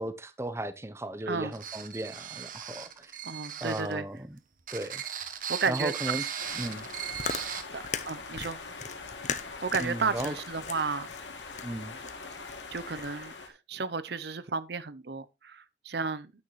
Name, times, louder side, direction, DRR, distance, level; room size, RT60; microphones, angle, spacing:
voice 1, 0.0-3.2 3.6-4.4 4.7-5.0 5.7-6.2 6.6-6.9 9.8-10.3 11.6-12.0, right 1 dB, 15° right, 0.7 m, -35 dB
sound 1, 1.5-3.9 4.6-7.6, right 9 dB, 45° right, 1.2 m, -37 dB
voice 2, 3.2-4.1 5.5-5.9 7.7-8.6 9.6-11.1 12.7-13.3 13.7-16.3, right 5 dB, 65° right, 0.7 m, -32 dB
sound 2, 6.4-13.5, left 4 dB, 90° left, 2.6 m, -43 dB
Chewing mastication, 6.8-13.3, left 6 dB, 40° left, 0.8 m, -39 dB
9.6 x 9.2 x 3.1 m
head